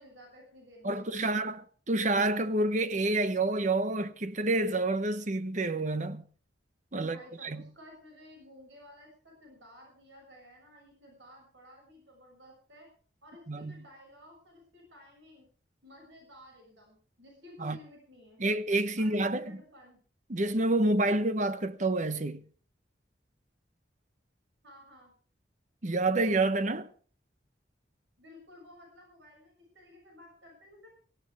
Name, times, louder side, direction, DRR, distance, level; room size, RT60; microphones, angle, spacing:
voice 1, 0.0-1.3 7.0-12.9 13.2-15.5 15.8-18.4 19.0-20.0 24.6-25.1 28.2-30.9, left 1 dB, 80° right, 6.9 m, -54 dB
voice 2, 0.8-6.2 6.9-7.6 13.5-13.8 17.6-17.8 18.4-19.6 20.3-22.4 25.8-26.9, right 2 dB, 40° right, 1.0 m, -28 dB
18.0 x 16.5 x 3.6 m
head